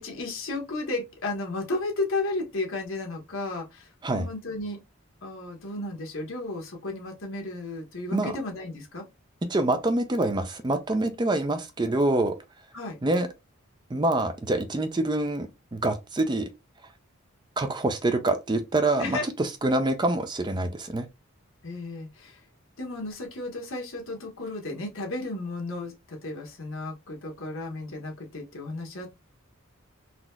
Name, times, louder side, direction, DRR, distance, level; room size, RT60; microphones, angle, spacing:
voice 1, 0.0-4.8 5.2-9.0 12.7-13.0 19.0-19.3 21.6-22.4 22.8-29.2, left 2 dB, 75° left, 1.2 m, -33 dB
voice 2, 9.5-12.4 13.0-13.3 13.9-16.5 17.6-21.1, right 2 dB, 20° right, 0.4 m, -26 dB
4.0 x 2.8 x 2.2 m
head